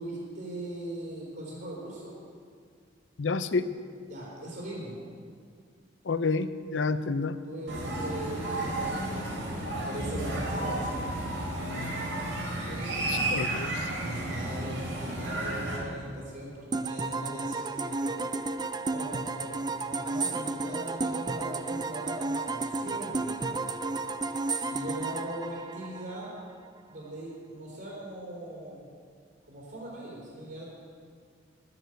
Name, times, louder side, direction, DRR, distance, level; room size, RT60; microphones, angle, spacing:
voice 1, 0.0-2.1 4.1-5.0 7.4-11.0 12.7-13.6 13.9-18.2 18.9-19.6 19.9-23.5 24.6-26.3 26.9-28.8 29.5-30.7, right 1 dB, 60° right, -6 dB, 3.7 m, -39 dB
voice 2, 3.2-3.7 6.0-7.4 11.5-12.0 13.1-13.9, left 4 dB, 80° left, 13 dB, 0.6 m, -30 dB
sound 1, 7.7-15.8, right 1 dB, 80° right, 3.9 m, -32 dB
sound 2, 16.7-26.4, right 3 dB, 20° right, 0.5 m, -32 dB
11.0 x 11.0 x 7.9 m, 2.1 s
head